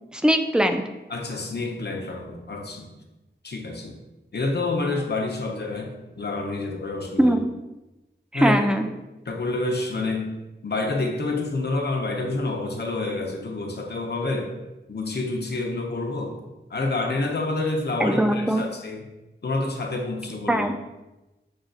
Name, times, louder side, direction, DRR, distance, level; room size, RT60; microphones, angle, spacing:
voice 1, 0.1-0.8 7.2-7.5 8.3-8.9 18.0-18.7 20.5-20.7, equal, 5° right, 6 dB, 0.3 m, -20 dB
voice 2, 1.1-2.9 3.4-4.0 4.3-7.4 8.3-8.6 9.3-10.3 10.6-14.5 14.9-16.4 16.7-19.1 19.4-20.7, left 2 dB, 60° left, 1 dB, 0.7 m, -28 dB
6.3 x 2.4 x 2.5 m, 1.0 s
wide cardioid pair, 70°, 19 cm